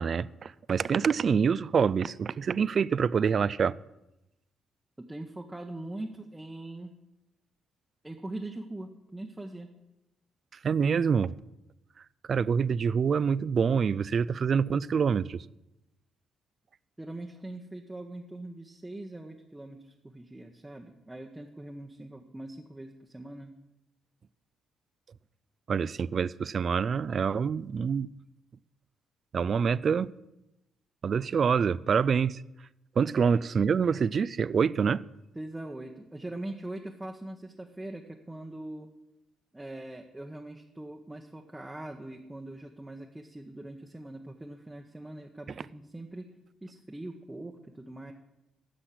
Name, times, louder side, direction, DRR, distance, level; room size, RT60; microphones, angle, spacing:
voice 1, 0.0-3.7 10.6-11.3 12.3-15.4 25.7-28.1 29.3-30.1 31.0-32.4 33.0-35.0, right 6 dB, 50° right, 0.3 m, -26 dB
voice 2, 5.1-6.9 8.0-9.7 17.0-23.5 35.3-38.9 39.5-46.3 46.6-48.1, right 1 dB, 10° right, 0.9 m, -42 dB
10.0 x 6.2 x 8.2 m
cardioid pair, 90°, 0 cm